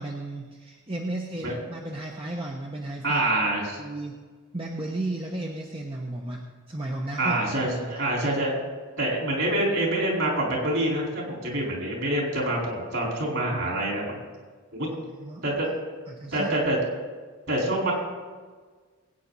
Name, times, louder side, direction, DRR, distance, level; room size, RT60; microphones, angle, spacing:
voice 1, 0.0-3.2 3.8-4.2 4.5-7.4 15.1-15.4 16.1-16.6, right 2 dB, 25° right, 0 dB, 1.0 m, -34 dB
voice 2, 3.0-3.8 7.2-8.5 9.0-14.2 14.7-14.9 15.4-15.7 16.3-16.8 17.5-17.9, right 1 dB, 60° right, -3 dB, 4.6 m, -26 dB
21.0 x 9.3 x 4.1 m, 1.5 s
head